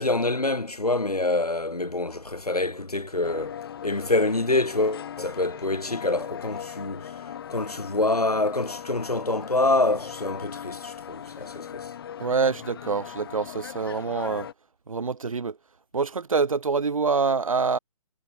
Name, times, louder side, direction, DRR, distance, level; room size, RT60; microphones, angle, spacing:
voice 1, 0.0-7.1 7.5-11.9, left 2 dB, 90° left, 0.9 m, -26 dB
sound 1, 3.2-14.5, left 9 dB, 40° left, 2.6 m, -39 dB
voice 2, 12.2-14.5 14.9-15.6 15.9-17.8, right 4 dB, 65° right, 1.2 m, -26 dB
figure-of-eight pair, 135°, 19 cm